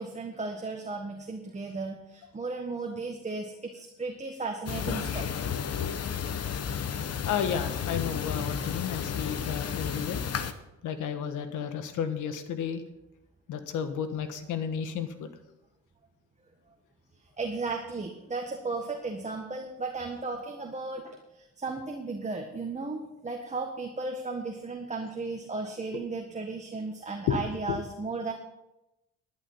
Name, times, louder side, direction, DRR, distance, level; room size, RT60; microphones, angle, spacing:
voice 1, 0.0-5.4 17.4-28.3, right 3 dB, 25° right, 2 dB, 1.6 m, -35 dB
sound 1, 4.7-10.5, left 7 dB, 55° left, 1.1 m, -32 dB
voice 2, 7.2-10.2 10.8-12.8 13.5-15.3 25.9-26.0 27.3-27.8, left 7 dB, 85° left, 9 dB, 1.4 m, -32 dB
11.5 x 11.0 x 5.6 m, 0.93 s
cardioid pair, 90°, 30 cm